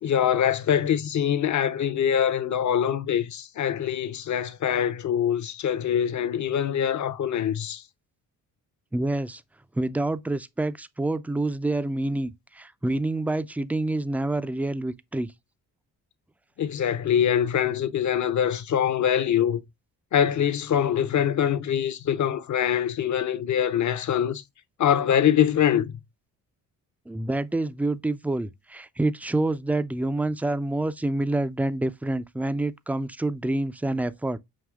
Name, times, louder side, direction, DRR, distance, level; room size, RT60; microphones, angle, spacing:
voice 1, 0.0-7.8 16.6-19.6 20.1-24.4 24.8-25.9, left 9 dB, 50° left, 0.7 m, -24 dB
voice 2, 8.9-9.4 9.8-15.3 27.1-34.4, right 2 dB, 5° right, 0.3 m, -27 dB
6.4 x 2.7 x 2.3 m
supercardioid pair, 60°, 38 cm